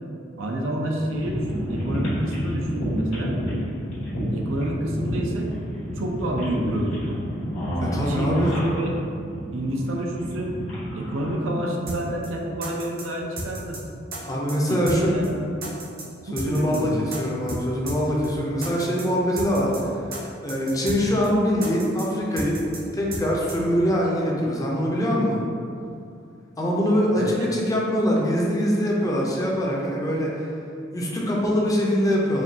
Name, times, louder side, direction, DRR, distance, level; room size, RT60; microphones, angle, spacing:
voice 1, 0.4-3.3 4.3-5.5 6.0-7.2 7.8-9.0 9.5-10.5 10.9-13.8 14.7-15.6 16.3-17.0 27.1-27.5, right 1 dB, 85° right, 0 dB, 0.5 m, -28 dB
sound 1, 1.1-11.3, equal, 80° left, 1.4 m, -30 dB
voice 2, 7.9-8.5 14.3-15.1 16.3-20.0 20.4-22.6 22.9-25.4 26.6-30.5 30.9-32.4, equal, 20° left, -3 dB, 0.5 m, -23 dB
sound 2, 11.9-12.0 12.2-12.3 12.6-13.0 13.4-13.8 14.1-14.2 14.5-15.0 15.2-15.3 15.6-16.0 16.4-16.8 17.1-17.2 17.5-17.6 17.9-18.0 18.2-18.3 18.6-19.0 19.4-19.8 20.1-20.2 20.5-21.0 21.2-21.3 21.6-22.0 22.4-22.8 23.1-23.2 23.5-23.6, right 2 dB, 50° right, 0.8 m, -33 dB
4.9 x 2.3 x 2.7 m, 2.5 s
head